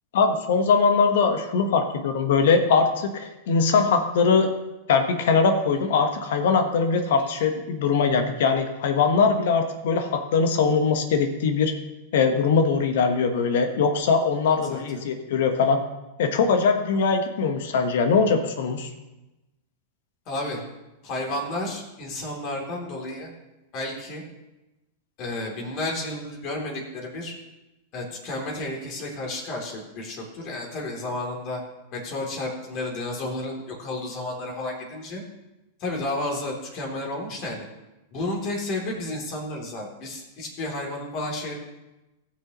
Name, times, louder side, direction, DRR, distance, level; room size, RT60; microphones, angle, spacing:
voice 1, 0.1-4.5 4.9-11.7 12.1-15.8 16.2-18.9, left 5 dB, 70° left, 6 dB, 1.2 m, -21 dB
voice 2, 14.5-15.0 20.3-20.6 21.0-23.3 23.7-24.2 25.2-27.4 27.9-31.6 31.9-35.2 35.8-37.6 38.1-41.5, left 2 dB, 45° left, 0 dB, 3.1 m, -32 dB
17.5 x 6.3 x 3.1 m, 1.0 s
hypercardioid pair, 110°, 0 cm